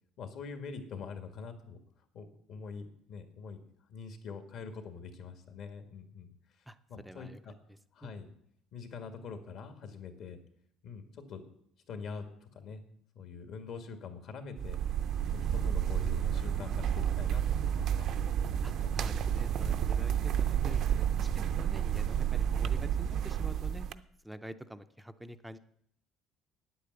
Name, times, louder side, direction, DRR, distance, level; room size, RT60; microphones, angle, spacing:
voice 1, 0.2-1.8 2.1-3.6 3.9-6.6 6.9-7.5 7.9-8.3 8.7-10.4 10.8-11.4 11.9-12.2 12.5-12.8 13.1-14.8 15.3-18.1 19.8-19.9, left 5 dB, 55° left, 7 dB, 1.8 m, -44 dB
voice 2, 7.0-7.4 7.7-8.1 18.6-25.6, equal, 5° right, 11 dB, 0.5 m, -47 dB
sound 1, 14.6-23.9, right 9 dB, 50° right, 0.5 m, -30 dB
9.5 x 8.4 x 7.9 m, 0.69 s
cardioid pair, 145°, 0 cm